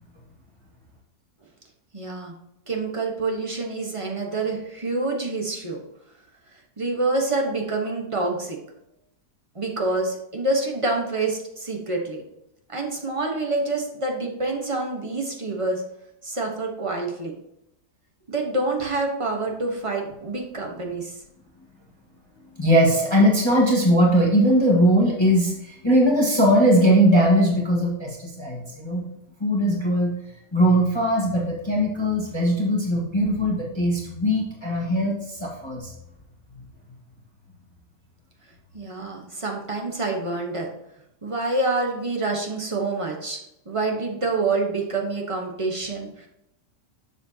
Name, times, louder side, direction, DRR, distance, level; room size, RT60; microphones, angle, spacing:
voice 1, 1.9-2.3 2.7-5.8 6.8-8.6 9.5-12.2 12.7-15.8 16.2-17.3 18.3-21.2 38.7-40.7 41.2-43.4 43.7-46.1, right 2 dB, 20° right, 1 dB, 1.0 m, -27 dB
voice 2, 22.6-29.0 29.4-30.1 30.5-35.9, equal, 15° left, -4 dB, 1.5 m, -20 dB
7.0 x 6.8 x 2.8 m, 0.82 s
omnidirectional pair, 1.8 m